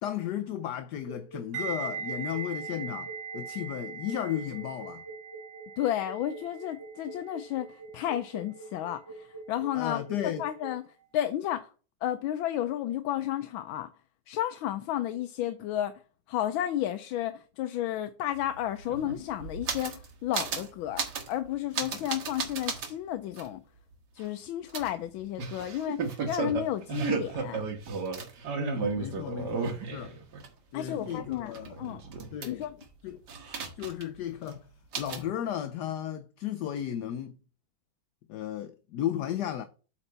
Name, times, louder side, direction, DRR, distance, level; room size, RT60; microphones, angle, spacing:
voice 1, 0.0-5.0 9.7-10.4 21.9-22.1 28.5-30.2 30.7-31.8 32.3-32.6 33.0-33.2 33.8-34.6 35.0-37.4 38.3-39.6, left 10 dB, 70° left, 1.1 m, -34 dB
sound 1, 1.1-10.7, right 3 dB, 15° left, 1.3 m, -45 dB
sound 2, 1.5-10.5 10.7-11.0, right 6 dB, 85° right, 1.9 m, -41 dB
voice 2, 5.8-10.0 10.4-10.8 11.1-11.7 12.0-13.9 14.3-16.0 16.3-23.6 24.1-27.6 30.7-32.0 32.4-32.8, left 12 dB, 85° left, 1.4 m, -32 dB
sound 3, 18.4-18.5 18.7-20.1 20.3-20.7 21.0-21.3 21.7-22.9 23.4-23.5 24.7-30.5 30.8-32.8 33.3-34.2 34.4-34.5 34.9-35.3, right 5 dB, 60° right, 1.8 m, -34 dB
8.3 x 4.5 x 3.9 m
omnidirectional pair, 2.1 m